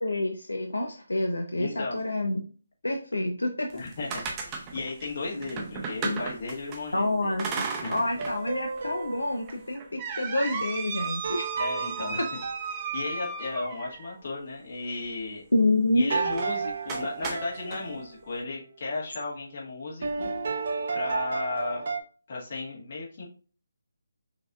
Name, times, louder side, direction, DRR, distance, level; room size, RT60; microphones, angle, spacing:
voice 1, 0.0-2.4 2.8-3.7 6.0-6.2 6.9-11.6 12.2-12.3 15.5-16.2, left 2 dB, 85° left, 3 dB, 0.5 m, -28 dB
voice 2, 1.6-2.0 3.7-7.4 7.7-8.0 11.6-12.2 12.7-15.4 15.9-20.3 20.9-21.8 22.3-23.2, left 3 dB, 50° left, -3 dB, 1.7 m, -35 dB
sound 1, 3.7-6.8 7.4-8.4 8.8-8.9 9.5-14.1 16.3-16.5 16.9-17.8, right 5 dB, 20° right, 0.6 m, -35 dB
sound 2, 8.1-9.6 11.2-13.4 16.1-18.1 20.0-22.0, right 4 dB, 55° right, 0.6 m, -33 dB
5.8 x 2.7 x 2.4 m, 0.39 s
figure-of-eight pair, 155°, 0 cm